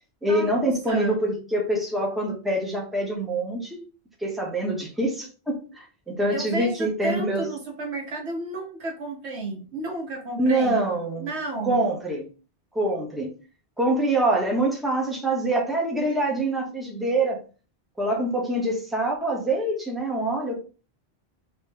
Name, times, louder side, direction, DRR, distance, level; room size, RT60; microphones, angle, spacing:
voice 1, 0.2-3.8 4.2-7.5 10.4-11.3 11.7-12.2 12.7-13.3 13.8-17.4 18.0-20.6, right 1 dB, ahead, -1 dB, 1.2 m, -25 dB
voice 2, 0.9-1.2 6.3-10.8 11.2-11.9, right 2 dB, 90° right, 1 dB, 1.5 m, -32 dB
3.4 x 3.3 x 4.6 m, 0.36 s
omnidirectional pair, 1.1 m